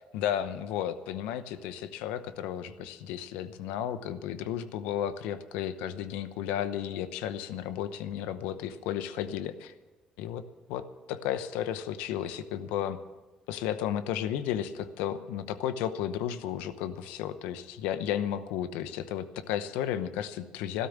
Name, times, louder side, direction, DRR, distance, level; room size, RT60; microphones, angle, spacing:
voice 1, 0.1-9.7 10.2-10.4 10.7-13.0 13.5-20.9, left 10 dB, 90° left, 12 dB, 0.8 m, -33 dB
13.0 x 12.5 x 7.3 m, 1.2 s
supercardioid pair, 75°, 2 cm